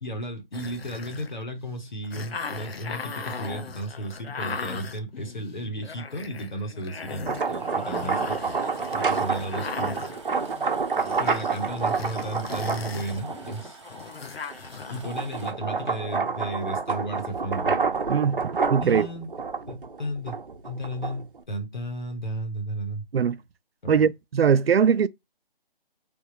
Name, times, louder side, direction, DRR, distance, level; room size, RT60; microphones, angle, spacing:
voice 1, 0.0-8.4 8.9-10.0 11.2-13.8 14.9-17.7 18.8-19.3 19.7-20.4 20.6-23.0 23.8-24.0, right 1 dB, 50° left, 1.2 m, -34 dB
sound 1, 0.5-15.0, left 5 dB, 90° left, 0.8 m, -38 dB
sound 2, 7.1-13.7 14.2-21.4, right 5 dB, 60° right, 0.9 m, -28 dB
sound 3, 7.5-15.5, right 3 dB, 30° right, 0.9 m, -48 dB
voice 2, 18.1-19.1 23.1-23.4 23.9-25.1, right 7 dB, 85° right, 0.5 m, -21 dB
3.4 x 2.3 x 2.9 m
hypercardioid pair, 180°, 29 cm